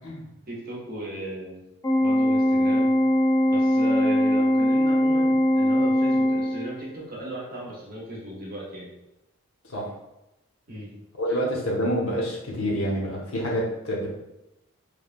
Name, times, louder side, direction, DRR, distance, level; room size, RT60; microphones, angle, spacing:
voice 1, 0.5-1.6 2.0-2.9 3.5-8.9 10.7-10.9 11.3-11.4, right 1 dB, 40° right, -5 dB, 0.8 m, -36 dB
Organ, 1.8-6.9, left 1 dB, 15° left, 0.3 m, -21 dB
voice 2, 11.2-14.1, equal, 80° left, -3 dB, 0.8 m, -27 dB
3.1 x 2.1 x 2.4 m, 0.90 s
head